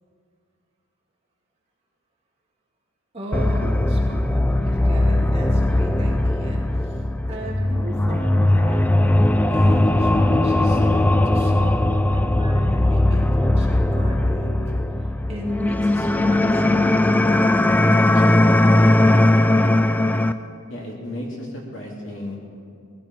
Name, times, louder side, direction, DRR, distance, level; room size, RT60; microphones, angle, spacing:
voice 1, 3.1-7.0 7.3-8.9 9.5-14.5 15.0-16.9 17.9-18.9, equal, 30° right, -4 dB, 2.5 m, -37 dB
sound 1, 3.3-20.3, left 1 dB, 10° left, 0.3 m, -18 dB
voice 2, 20.7-22.4, left 1 dB, 60° left, -2 dB, 2.9 m, -33 dB
19.0 x 15.5 x 4.6 m, 2.3 s
head